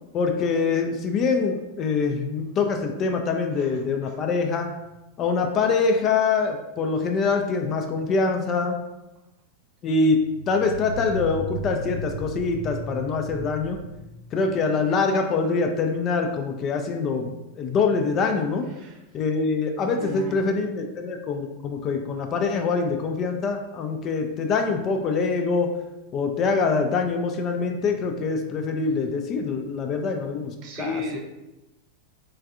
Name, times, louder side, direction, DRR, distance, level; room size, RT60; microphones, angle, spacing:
voice 1, 0.1-4.7 5.2-8.8 9.8-10.2 10.5-13.8 14.3-17.3 17.6-18.7 19.1-25.7 26.1-31.2, left 4 dB, 30° left, 4 dB, 0.3 m, -24 dB
voice 2, 3.5-4.2 18.7-19.0 19.8-20.4 29.9-30.0 30.6-31.2, left 2 dB, 40° right, -1 dB, 0.7 m, -35 dB
sound 1, 4.9-5.0 10.2-14.7, right 1 dB, 90° right, 0.4 m, -36 dB
3.3 x 3.1 x 2.4 m, 0.98 s
figure-of-eight pair, 90°, 0 cm